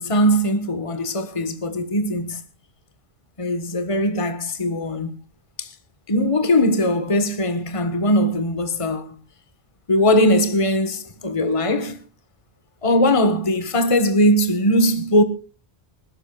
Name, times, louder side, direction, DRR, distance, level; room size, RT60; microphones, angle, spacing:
voice 1, 0.0-2.4 3.4-5.2 5.6-5.7 6.1-9.1 9.9-12.0 12.8-15.2, equal, 30° left, 1.5 m, -20 dB
26.5 x 12.0 x 2.4 m
omnidirectional pair, 1.1 m